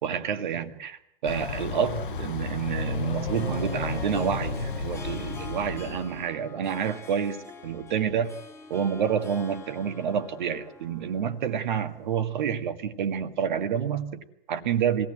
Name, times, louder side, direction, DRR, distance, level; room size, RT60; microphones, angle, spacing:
voice 1, 0.0-8.3 8.7-15.1, right 8 dB, 50° right, 8 dB, 1.8 m, -28 dB
Thunder / Bicycle, 1.3-6.3, left 8 dB, 60° left, 1.1 m, -36 dB
sound 1, 2.6-5.9, left 2 dB, 75° left, 4.1 m, -34 dB
Harp, 3.3-12.3, left 3 dB, 10° left, 1.8 m, -47 dB
24.5 x 17.5 x 7.8 m, 0.82 s
figure-of-eight pair, 110°, 30 cm